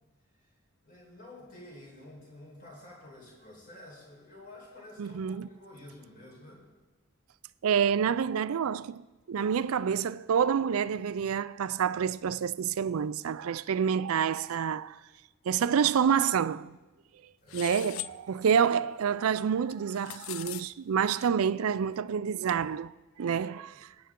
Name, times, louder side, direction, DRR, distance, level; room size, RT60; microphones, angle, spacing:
voice 1, 0.8-6.7 17.4-18.1 23.5-23.8, left 1 dB, 40° left, 4.2 m, -50 dB
voice 2, 5.0-5.5 7.6-15.0 15.5-16.8 17.5-18.0 18.3-22.9 23.2-23.9, right 7 dB, 85° right, 0.4 m, -28 dB
sound 1, 17.5-18.1 19.7-20.6, left 16 dB, 65° left, 0.3 m, -39 dB
22.5 x 9.7 x 3.7 m
head